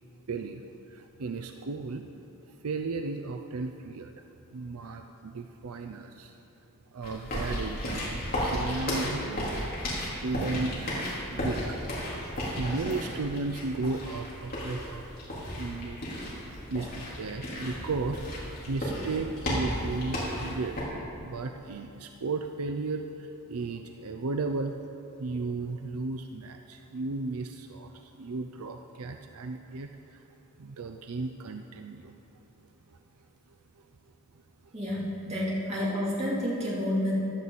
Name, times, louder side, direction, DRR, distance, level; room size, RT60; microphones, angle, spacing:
voice 1, 0.3-0.6 0.9-2.0 2.5-4.1 4.5-6.3 6.9-11.8 12.1-15.2 15.6-16.0 16.7-18.3 18.6-20.9 21.2-24.8 25.2-30.2 30.6-32.1 34.6-34.7, right 3 dB, 75° right, 6 dB, 0.5 m, -35 dB
sound 1, 7.0-20.8, equal, 40° left, 3.5 m, -34 dB
voice 2, 34.7-37.1, left 1 dB, 30° right, -7 dB, 3.1 m, -29 dB
15.5 x 11.0 x 4.1 m, 2.8 s
head